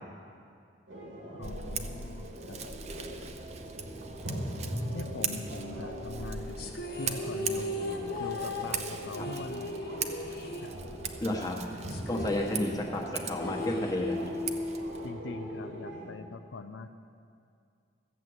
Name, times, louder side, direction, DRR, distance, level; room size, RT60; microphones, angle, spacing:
sound 1, 0.9-16.1, equal, 90° right, 2.6 m, -40 dB
voice 1, 1.3-2.6 4.9-7.7 8.2-9.8 10.6-10.7 15.0-16.9, left 3 dB, 85° left, 8 dB, 0.6 m, -42 dB
Scissors, 1.4-15.1, right 6 dB, 35° right, 0.7 m, -41 dB
sound 2, 6.6-11.2 11.5-11.6 11.9-14.5, left 2 dB, 55° left, 1.2 m, -38 dB
voice 2, 11.2-11.6 12.1-14.3, left 1 dB, 20° left, 0 dB, 1.3 m, -32 dB
14.0 x 7.5 x 8.0 m, 2.4 s
head